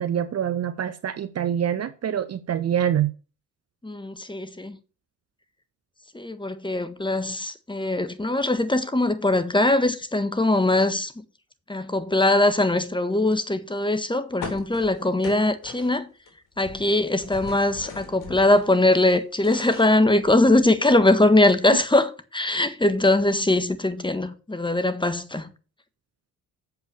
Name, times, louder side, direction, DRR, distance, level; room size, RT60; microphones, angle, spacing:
voice 1, 0.0-3.1, right 9 dB, 40° right, 0.8 m, -25 dB
voice 2, 3.8-4.8 6.1-11.1 11.7-16.1 16.6-25.5, left 2 dB, 10° left, 1.4 m, -21 dB
sound 1, 14.4-16.3 16.6-18.7 19.1-20.7, left 5 dB, 70° left, 3.0 m, -40 dB
7.4 x 5.7 x 6.8 m
hypercardioid pair, 50°, 40 cm